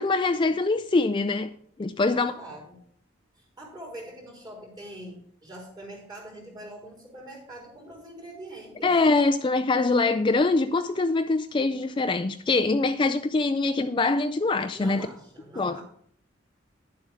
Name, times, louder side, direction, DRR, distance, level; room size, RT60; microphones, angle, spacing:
voice 1, 0.0-1.5 1.8-2.3 8.8-15.1 15.6-15.8, left 3 dB, 25° left, 0.4 m, -24 dB
voice 2, 2.1-2.8 3.3-8.9 14.7-15.8, right 1 dB, 20° right, 3.8 m, -43 dB
10.5 x 7.3 x 5.0 m
head